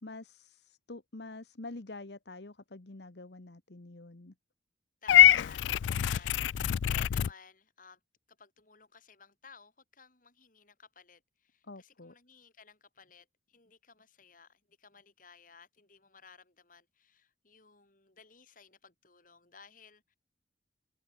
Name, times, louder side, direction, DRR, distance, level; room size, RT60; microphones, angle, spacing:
voice 1, 0.0-4.3 11.7-12.1, left 2 dB, 65° left, 1.2 m, -46 dB
voice 2, 5.0-8.0 8.3-20.2, left 5 dB, 45° left, 3.6 m, -57 dB
Purr / Meow, 5.1-7.3, left 11 dB, 80° left, 0.3 m, -24 dB
head